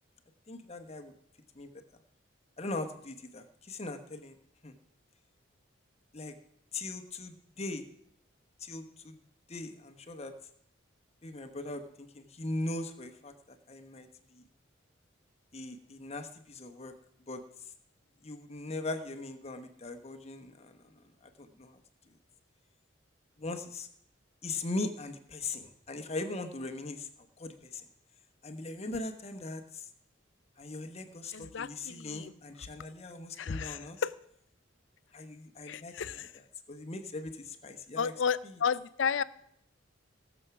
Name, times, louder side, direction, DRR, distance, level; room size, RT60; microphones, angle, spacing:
voice 1, 0.5-1.1 1.5-1.7 2.6-4.4 4.6-4.7 6.1-6.3 6.7-7.9 8.6-9.2 9.5-10.3 11.2-14.4 15.5-16.9 17.3-17.4 18.2-20.8 21.2-21.8 23.4-23.9 24.4-27.1 27.4-27.8 28.4-29.9 30.6-34.0 35.1-36.3 36.7-38.1 38.4-38.6, left 2 dB, 35° left, 7 dB, 1.1 m, -40 dB
voice 2, 31.3-32.3 33.4-34.1 35.7-36.3 38.0-39.2, left 6 dB, 70° left, 17 dB, 0.5 m, -32 dB
18.0 x 7.2 x 5.9 m, 0.71 s
head